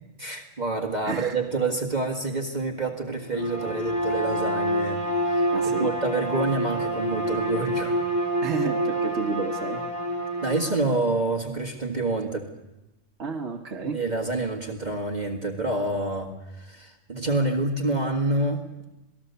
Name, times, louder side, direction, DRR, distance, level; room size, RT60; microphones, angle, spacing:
voice 1, 0.2-7.9 10.4-12.5 13.8-18.7, right 2 dB, 35° right, 2 dB, 1.9 m, -27 dB
voice 2, 1.0-1.4 5.5-5.9 8.4-9.8 13.2-14.0, right 4 dB, 65° right, 1 dB, 1.5 m, -31 dB
Bowed string instrument, 3.3-10.8, right 1 dB, 30° left, 3.2 m, -27 dB
26.5 x 19.0 x 6.9 m, 0.98 s
omnidirectional pair, 1.3 m